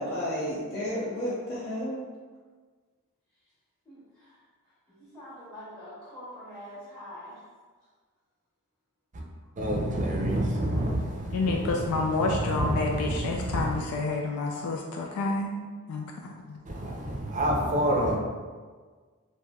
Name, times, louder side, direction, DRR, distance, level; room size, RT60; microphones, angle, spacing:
voice 1, 0.0-2.1, equal, 55° left, -11 dB, 0.7 m, -32 dB
voice 2, 3.9-4.4 4.9-7.4, left 1 dB, 15° left, -13 dB, 0.8 m, -45 dB
voice 3, 9.6-13.8 16.6-18.2, right 1 dB, 35° right, -1 dB, 0.5 m, -28 dB
voice 4, 11.3-16.1 16.5-16.6, left 3 dB, 85° left, 0 dB, 0.3 m, -29 dB
3.1 x 2.6 x 2.2 m, 1.5 s
head